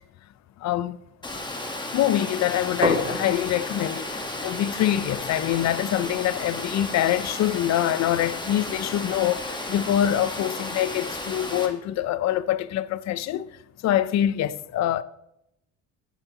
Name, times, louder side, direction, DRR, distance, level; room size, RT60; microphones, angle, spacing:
voice 1, 0.6-1.0 1.9-13.5 13.8-15.0, left 12 dB, 60° left, 0.5 m, -25 dB
Water, 1.2-11.7, left 2 dB, 15° left, 1.2 m, -33 dB
sound 1, 2.8-8.5, equal, 20° right, 2.9 m, -35 dB
12.5 x 8.2 x 2.9 m
cardioid pair, 115°, 30 cm